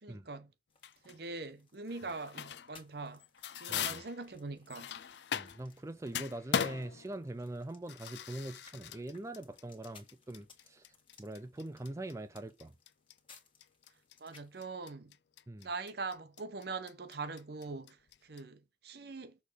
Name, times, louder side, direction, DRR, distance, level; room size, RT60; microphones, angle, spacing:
voice 1, 0.0-0.5 1.0-3.2 3.5-4.9 14.2-15.2 15.6-18.0 18.2-19.4, right 3 dB, 65° right, 0.9 m, -42 dB
sound 1, 0.7-14.6, left 5 dB, 30° left, 1.5 m, -64 dB
sound 2, 0.8-1.2 1.9-2.8 3.1-5.8 6.1-18.4, left 8 dB, 70° left, 0.5 m, -40 dB
voice 2, 3.7-4.0 5.3-10.9 11.2-12.8 15.5-15.7, right 1 dB, 15° right, 0.4 m, -43 dB
6.3 x 3.4 x 4.9 m
head